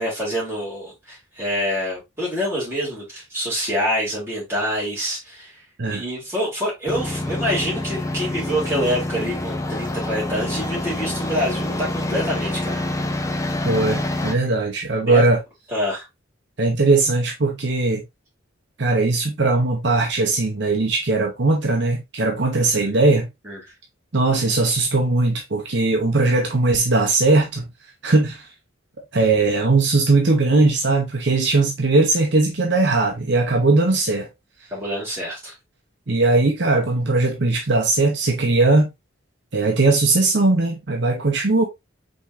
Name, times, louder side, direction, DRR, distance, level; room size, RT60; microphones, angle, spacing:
voice 1, 0.0-5.6 5.9-12.8 15.0-15.2 15.7-16.1 22.8-22.9 23.4-23.6 34.7-35.5, equal, 10° right, 3.1 m, -26 dB
sound 1, 6.9-14.3, left 1 dB, 15° left, 0.5 m, -26 dB
voice 2, 13.6-15.4 16.6-18.0 18.8-23.3 24.1-27.7 28.0-28.5 29.1-34.3 36.1-38.9 39.5-41.6, right 3 dB, 55° right, 0.8 m, -19 dB
5.2 x 3.6 x 2.6 m
head